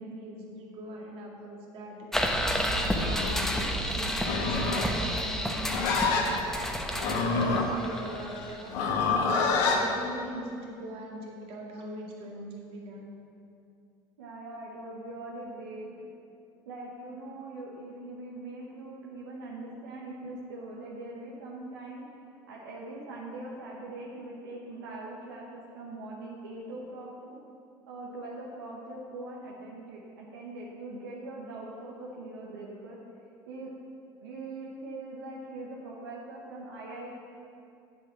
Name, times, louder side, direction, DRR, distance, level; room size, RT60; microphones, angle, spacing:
voice 1, 0.0-2.2 2.6-6.4 6.9-8.8 9.3-13.1, right 1 dB, 60° right, -1 dB, 2.1 m, -41 dB
sound 1, 2.1-8.7, equal, 5° left, 1.0 m, -30 dB
Livestock farm animals working animals, 4.1-9.8, left 4 dB, 75° left, 1.2 m, -27 dB
voice 2, 14.2-15.9 16.7-22.0 22.5-27.4 27.9-33.0 33.5-33.7 34.2-37.1, right 2 dB, 90° right, -4 dB, 1.1 m, -42 dB
8.3 x 7.1 x 5.9 m, 2.6 s
hypercardioid pair, 80°, 11 cm